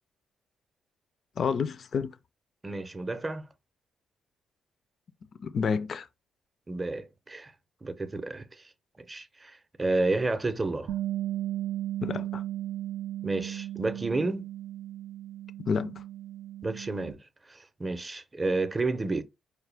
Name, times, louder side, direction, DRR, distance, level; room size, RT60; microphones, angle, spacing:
voice 1, 1.4-2.1 5.4-6.1 12.0-12.4 15.6-15.9, left 6 dB, 50° left, 0.4 m, -29 dB
voice 2, 2.6-3.5 6.7-7.5 7.8-8.6 9.0-10.9 13.2-14.5 16.6-17.2 17.5-19.2, right 2 dB, 20° right, 0.6 m, -31 dB
Bass guitar, 10.9-17.1, right 13 dB, 85° right, 0.3 m, -35 dB
4.7 x 2.2 x 3.3 m
cardioid pair, 90°, 0 cm